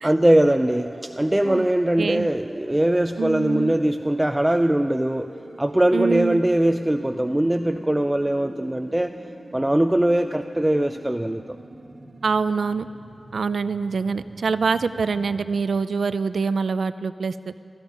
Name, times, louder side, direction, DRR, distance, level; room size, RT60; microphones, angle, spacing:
voice 1, 0.0-5.3 5.6-9.1 9.5-11.6, right 1 dB, 15° right, 7 dB, 0.4 m, -21 dB
sound 1, 0.7-15.6, right 2 dB, 60° right, 1.5 m, -43 dB
voice 2, 2.0-2.3 3.2-3.7 5.9-6.4 12.2-12.9 13.3-17.5, right 5 dB, 90° right, 13 dB, 0.4 m, -25 dB
17.5 x 14.0 x 5.4 m, 2.4 s
wide cardioid pair, 65°, 0 cm